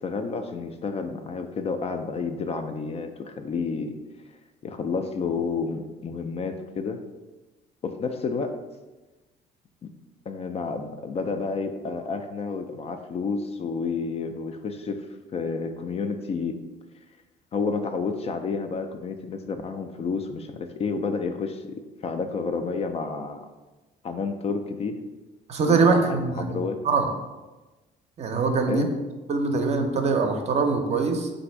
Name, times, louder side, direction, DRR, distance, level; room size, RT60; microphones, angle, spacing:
voice 1, 0.0-4.0 4.6-7.0 7.8-8.6 10.3-15.1 15.3-16.6 17.5-23.4 24.0-25.0 25.6-26.8 28.7-28.9, left 4 dB, 40° left, 7 dB, 0.4 m, -30 dB
voice 2, 25.5-27.1 28.2-28.8 29.3-31.3, right 4 dB, 40° right, 4 dB, 0.6 m, -23 dB
3.9 x 2.6 x 4.4 m, 1.2 s
cardioid pair, 110°, 17 cm